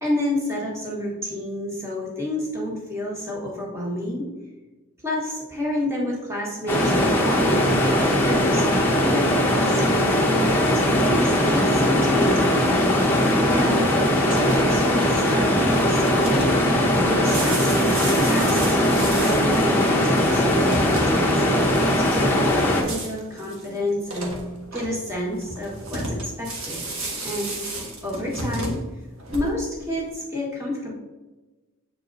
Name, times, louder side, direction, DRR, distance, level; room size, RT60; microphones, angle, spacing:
voice 1, 0.0-4.3 5.0-8.8 9.1-12.8 13.5-13.8 14.1-16.6 17.0-21.4 22.0-24.4 24.7-27.6 28.0-28.8 29.3-30.9, left 1 dB, 15° right, -4 dB, 1.5 m, -30 dB
sound 1, 6.7-22.8, left 1 dB, 10° left, 1.0 m, -20 dB
sound 2, 14.2-29.8, right 1 dB, 80° right, 1.4 m, -34 dB
7.7 x 4.6 x 2.7 m, 1.2 s
head